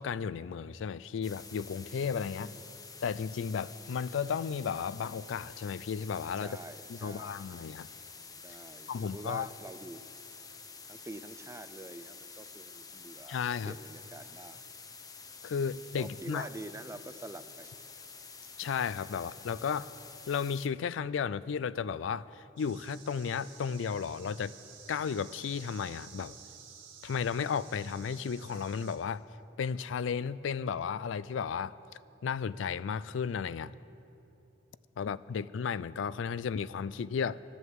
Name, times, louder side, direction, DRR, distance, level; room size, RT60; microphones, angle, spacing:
voice 1, 0.0-2.5 3.0-6.6 6.9-7.9 8.9-9.5 13.3-13.7 15.4-16.5 18.6-19.9 20.3-24.5 24.9-26.4 27.0-29.2 29.6-31.7 32.2-33.7 35.0-37.5, left 6 dB, 85° left, 18 dB, 0.4 m, -34 dB
sound 1, 1.2-20.7, left 5 dB, 20° left, 0.7 m, -49 dB
voice 2, 2.4-2.8 6.4-7.4 8.4-10.0 10.9-13.4 13.7-14.6 16.0-17.7 34.9-35.0, right 2 dB, 15° right, 11 dB, 0.4 m, -46 dB
sound 2, 22.6-29.0, right 7 dB, 85° right, 2.0 m, -52 dB
12.5 x 11.0 x 7.8 m, 2.8 s
head